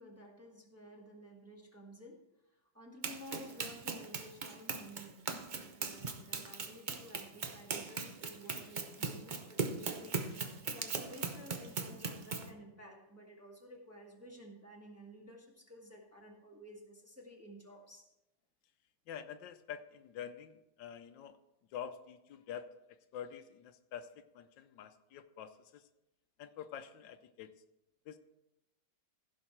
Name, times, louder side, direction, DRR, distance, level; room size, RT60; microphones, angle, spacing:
voice 1, 0.0-10.4 10.7-18.1, equal, 10° right, -1 dB, 1.3 m, -53 dB
Run, 3.0-12.5, right 4 dB, 65° right, 0.4 m, -39 dB
voice 2, 19.1-21.4 21.7-22.8 23.1-25.9 26.4-27.5 28.1-28.2, left 8 dB, 80° left, 10 dB, 1.3 m, -47 dB
15.5 x 5.6 x 4.4 m, 0.93 s
omnidirectional pair, 2.0 m